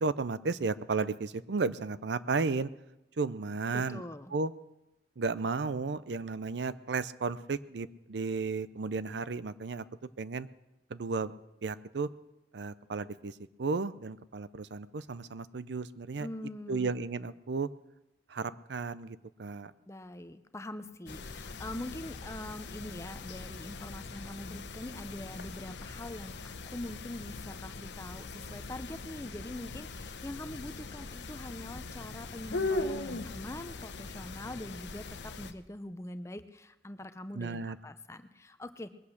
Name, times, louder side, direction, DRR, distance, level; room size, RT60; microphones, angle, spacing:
voice 1, 0.0-2.7 3.2-4.0 4.3-4.5 5.2-9.9 10.2-10.5 10.9-11.3 11.6-12.1 12.5-16.3 16.7-17.7 18.3-19.7 37.3-37.8, right 4 dB, 75° right, 16 dB, 0.5 m, -33 dB
voice 2, 3.7-4.3 16.2-16.9 19.9-38.9, left 1 dB, 15° left, 11 dB, 0.6 m, -43 dB
sound 1, 21.1-35.5, left 3 dB, 80° left, 0.8 m, -40 dB
20.5 x 8.5 x 6.5 m, 0.94 s
head